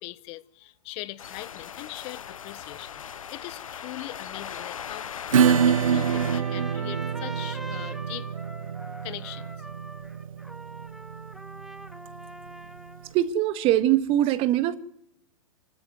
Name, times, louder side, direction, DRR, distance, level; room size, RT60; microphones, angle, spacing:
voice 1, 0.0-8.3 9.0-9.7, left 18 dB, 35° left, 1.0 m, -41 dB
sound 1, 1.2-6.4, left 8 dB, 75° left, 1.0 m, -39 dB
Acoustic guitar / Strum, 5.3-12.5, right 7 dB, 75° right, 0.8 m, -26 dB
Trumpet, 5.8-13.1, equal, ahead, 1.3 m, -42 dB
voice 2, 13.1-14.8, right 13 dB, 35° right, 1.7 m, -22 dB
26.5 x 13.0 x 9.3 m
hypercardioid pair, 125°, 17 cm